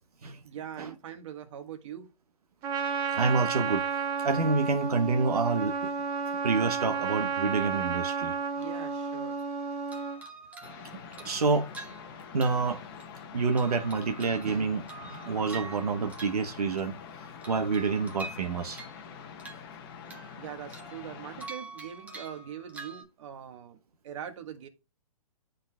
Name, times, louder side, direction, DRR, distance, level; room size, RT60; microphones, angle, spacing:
voice 1, 0.4-2.1 8.6-9.4 20.4-23.8 24.0-24.7, right 9 dB, 55° right, 1.4 m, -42 dB
Trumpet, 2.6-10.2, right 5 dB, 30° right, 1.2 m, -32 dB
voice 2, 3.1-3.8 4.2-5.7 6.4-8.3 11.2-11.7 12.3-12.8 13.3-14.8 15.1-17.0 17.5-18.8, right 4 dB, 90° right, 1.0 m, -27 dB
sound 1, 8.6-9.5 9.9-13.2 13.6-17.0 17.4-19.1 19.4-20.4 20.7-23.0, right 3 dB, 5° right, 0.9 m, -46 dB
sound 2, 10.6-21.5, left 7 dB, 40° left, 0.8 m, -45 dB
11.5 x 3.9 x 2.3 m
hypercardioid pair, 145°, 19 cm